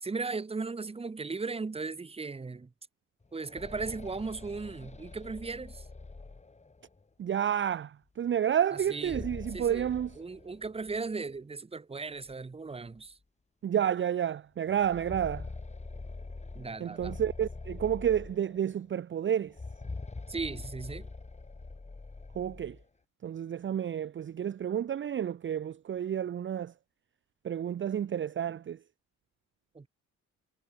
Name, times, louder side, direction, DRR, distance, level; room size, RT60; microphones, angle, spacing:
voice 1, 0.0-2.7 3.3-5.8 8.7-13.1 16.5-17.2 20.3-21.1 28.5-28.6 29.7-29.9, right 4 dB, 20° right, 1.2 m, -37 dB
sound 1, 3.2-7.0 8.8-11.0 11.3-11.4 12.3-12.4 12.9-13.0 14.6-18.8 19.5-22.8, left 3 dB, 20° left, 7.4 m, -44 dB
voice 2, 7.2-10.1 13.6-15.5 16.8-19.5 22.4-22.7 23.2-26.7 27.4-28.8, right 9 dB, 40° right, 0.7 m, -30 dB
cardioid pair, 90°, 30 cm